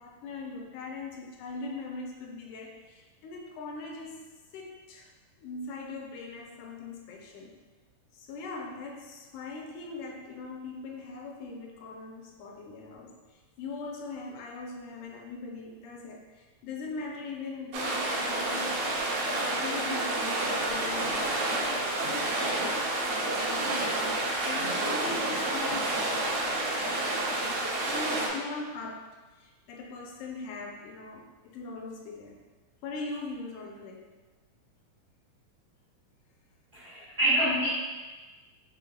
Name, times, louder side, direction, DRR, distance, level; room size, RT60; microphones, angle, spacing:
voice 1, 0.0-4.2 4.5-5.1 5.4-7.6 8.1-22.9 23.3-29.1 29.4-32.4 32.8-34.0, left 3 dB, 80° left, 0 dB, 2.0 m, -41 dB
sound 1, 17.7-28.3, right 2 dB, 75° right, 1.6 m, -29 dB
voice 2, 36.7-37.7, right 1 dB, 90° right, -12 dB, 0.8 m, -26 dB
5.8 x 3.1 x 2.2 m, 1.3 s
omnidirectional pair, 3.6 m